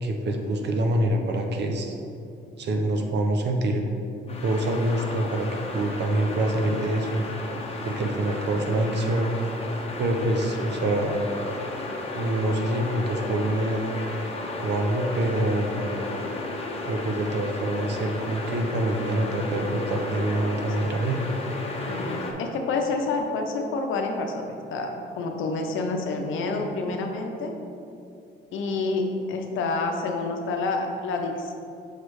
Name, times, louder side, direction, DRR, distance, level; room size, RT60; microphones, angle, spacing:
voice 1, 0.0-1.9 2.6-3.8 4.4-7.2 7.8-9.3 10.0-11.2 12.0-14.0 14.6-16.0 16.9-21.2, right 1 dB, 60° right, 3 dB, 0.7 m, -26 dB
sound 1, 4.3-22.3, left 2 dB, 30° left, 0.9 m, -34 dB
voice 2, 21.9-27.5 28.5-31.5, left 3 dB, 80° left, 3 dB, 0.7 m, -28 dB
6.4 x 3.2 x 4.7 m, 2.6 s
cardioid pair, 90°, 20 cm